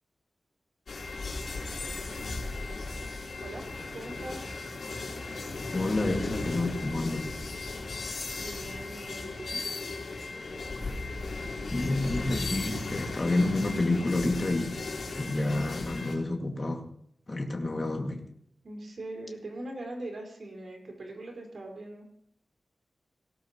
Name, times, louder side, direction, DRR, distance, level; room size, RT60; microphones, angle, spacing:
sound 1, 0.9-16.1, left 3 dB, 70° left, 3.8 m, -36 dB
voice 1, 3.4-4.4 7.8-8.0 8.3-9.6 18.6-22.1, right 2 dB, 65° right, 1 dB, 4.8 m, -41 dB
voice 2, 5.7-7.3 11.7-14.8 15.2-16.8 17.3-18.2, left 2 dB, 35° left, 1 dB, 2.2 m, -29 dB
18.0 x 17.5 x 3.1 m, 0.67 s
wide cardioid pair, 115°, 0 cm